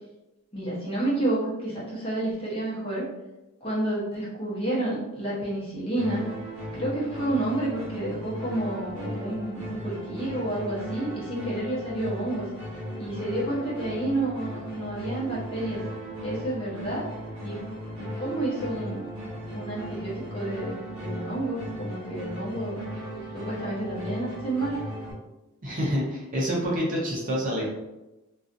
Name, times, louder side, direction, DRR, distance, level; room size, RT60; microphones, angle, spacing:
voice 1, 0.5-3.1 3.6-6.2 6.7-12.5 13.0-15.8 16.2-17.0 17.4-17.6 18.0-19.0 19.5-22.8 23.3-24.8, right 1 dB, 25° left, -7 dB, 0.8 m, -30 dB
sound 1, 5.9-25.1, equal, 20° right, 1.1 m, -37 dB
voice 2, 25.6-27.7, equal, 40° right, -4 dB, 0.6 m, -27 dB
2.5 x 2.3 x 2.5 m, 1.0 s
head